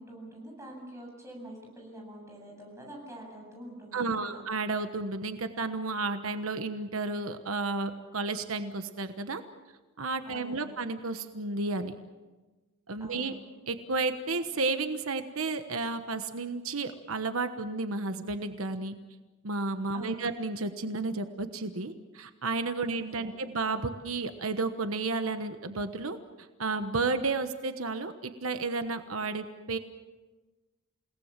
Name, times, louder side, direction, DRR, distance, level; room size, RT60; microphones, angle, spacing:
voice 1, 0.0-4.4 10.2-10.8 13.0-13.3 19.9-20.3 22.8-23.4, right 1 dB, 15° right, 0 dB, 7.9 m, -46 dB
voice 2, 3.9-9.4 10.0-12.0 12.9-13.4 13.7-18.9 19.4-26.2 26.6-29.8, right 3 dB, 85° right, 9 dB, 1.2 m, -32 dB
29.5 x 18.5 x 7.4 m, 1.2 s
head